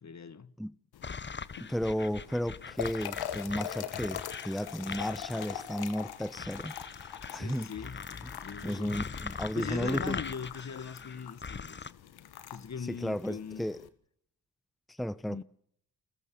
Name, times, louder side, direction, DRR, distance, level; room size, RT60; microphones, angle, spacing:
voice 1, 0.0-0.5 7.3-8.0 8.4-9.0 9.5-11.9 12.5-13.7 15.3-15.4, left 6 dB, 45° left, 1.6 m, -40 dB
sound 1, 0.9-13.9, left 11 dB, 85° left, 1.8 m, -44 dB
sound 2, 1.0-11.9, left 5 dB, 30° left, 1.0 m, -41 dB
voice 2, 1.6-4.2 4.4-6.7 7.3-7.7 8.6-10.2 12.9-13.8 14.9-15.4, equal, ahead, 0.9 m, -33 dB
29.0 x 14.0 x 7.0 m
supercardioid pair, 50°, 37 cm